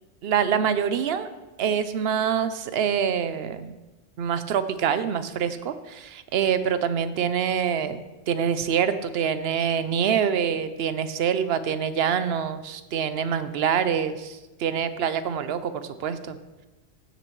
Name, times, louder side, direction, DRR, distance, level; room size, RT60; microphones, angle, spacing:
voice 1, 0.2-1.3 1.6-3.7 4.2-8.0 8.3-16.4, right 8 dB, 70° right, 12 dB, 0.8 m, -25 dB
15.5 x 6.9 x 3.1 m, 1.1 s
omnidirectional pair, 1.1 m